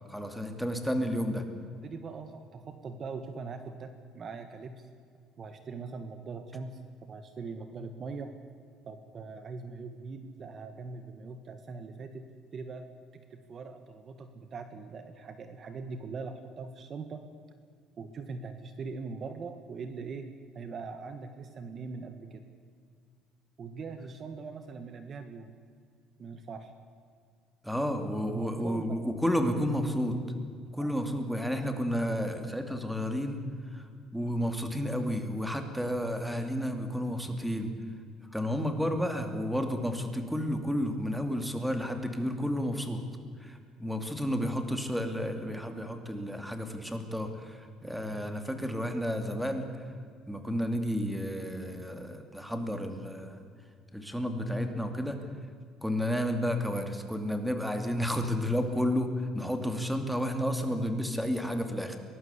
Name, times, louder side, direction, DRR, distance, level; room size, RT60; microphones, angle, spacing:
voice 1, 0.1-1.4 27.6-30.2 30.7-33.4 33.7-37.7 38.2-43.0 43.4-49.9 50.3-53.4 53.9-55.2 55.8-62.0, equal, ahead, 6 dB, 2.5 m, -31 dB
voice 2, 1.8-4.9 5.4-8.3 8.9-12.9 13.1-17.2 18.0-20.3 20.5-22.4 23.6-25.5 26.2-26.7 28.3-29.0 30.8-31.0, right 4 dB, 35° right, 8 dB, 1.7 m, -41 dB
23.5 x 19.0 x 8.3 m, 2.2 s
cardioid pair, 135°, 0 cm